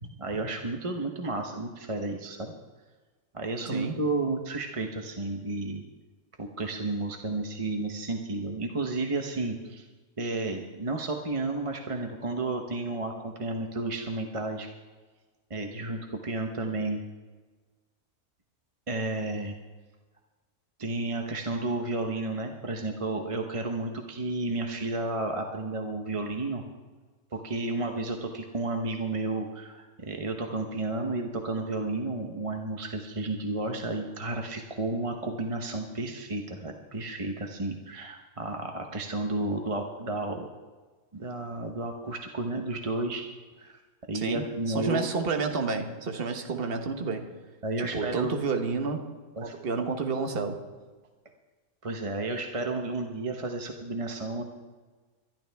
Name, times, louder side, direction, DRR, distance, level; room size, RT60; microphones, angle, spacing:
voice 1, 0.0-2.5 3.3-5.8 6.4-9.8 10.2-14.7 15.5-17.0 18.9-19.5 20.8-26.6 27.3-40.5 41.1-43.3 43.6-43.8 44.1-45.1 47.6-48.4 49.4-49.5 51.8-54.4, right 2 dB, 25° right, 3 dB, 0.9 m, -32 dB
voice 2, 44.1-47.3 47.9-49.1 49.4-50.7, right 4 dB, 40° right, 5 dB, 1.4 m, -30 dB
23.5 x 12.0 x 3.5 m, 1.3 s
omnidirectional pair, 1.5 m